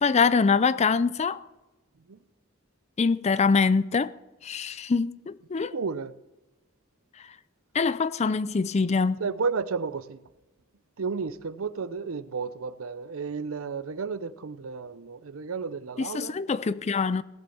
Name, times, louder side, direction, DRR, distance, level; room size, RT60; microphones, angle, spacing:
voice 1, 0.0-1.4 3.0-4.1 4.4-5.7 7.7-9.2 16.0-17.2, left 5 dB, 30° left, 0.4 m, -24 dB
voice 2, 5.7-6.1 9.2-10.0 11.0-16.3, right 5 dB, 80° right, 0.6 m, -32 dB
17.5 x 7.1 x 7.8 m
head